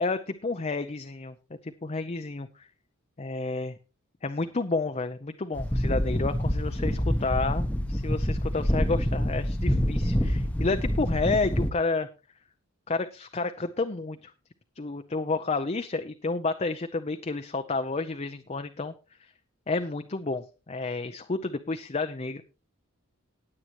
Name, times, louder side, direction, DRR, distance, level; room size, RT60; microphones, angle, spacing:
voice 1, 0.0-1.3 1.6-2.7 3.2-3.8 4.2-12.1 12.9-14.3 14.8-18.9 19.7-22.4, left 3 dB, 30° left, 8 dB, 0.6 m, -30 dB
sound 1, 5.6-11.7, equal, 5° left, 0.9 m, -26 dB
19.5 x 7.7 x 3.0 m, 0.31 s
head